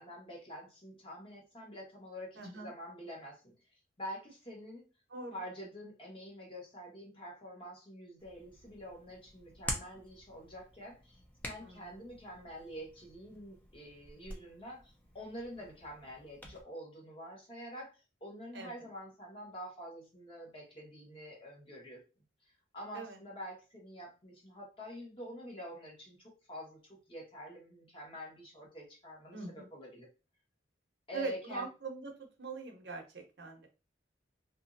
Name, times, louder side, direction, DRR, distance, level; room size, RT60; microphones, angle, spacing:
voice 1, 0.0-4.8 5.3-22.0 22.4-30.1 31.1-31.7, equal, 25° left, -2 dB, 1.1 m, -47 dB
voice 2, 2.4-2.7 5.1-5.3 11.6-11.7 18.5-18.7 22.9-23.2 29.3-29.7 31.1-32.1 32.4-33.7, right 4 dB, 55° right, 3 dB, 0.7 m, -42 dB
Hands, 8.2-16.6, left 1 dB, 10° left, 0.5 m, -47 dB
2.8 x 2.6 x 2.6 m, 0.30 s
head